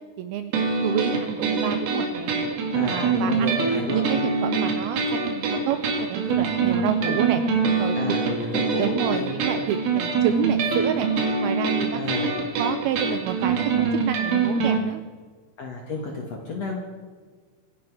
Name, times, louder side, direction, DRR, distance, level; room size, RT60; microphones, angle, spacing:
voice 1, 0.2-0.5 0.8-2.5 2.8-3.6 3.9-5.8 6.1-7.4 7.8-8.1 8.8-11.1 11.4-15.0, right 11 dB, 90° right, 10 dB, 2.2 m, -29 dB
sound 1, 0.5-14.8, right 4 dB, 65° right, 3.5 m, -24 dB
voice 2, 2.7-4.0 7.0-7.2 8.0-9.4 11.9-12.3 15.6-16.8, left 3 dB, 60° left, 1 dB, 1.7 m, -31 dB
26.0 x 10.5 x 4.7 m, 1.5 s
omnidirectional pair, 5.1 m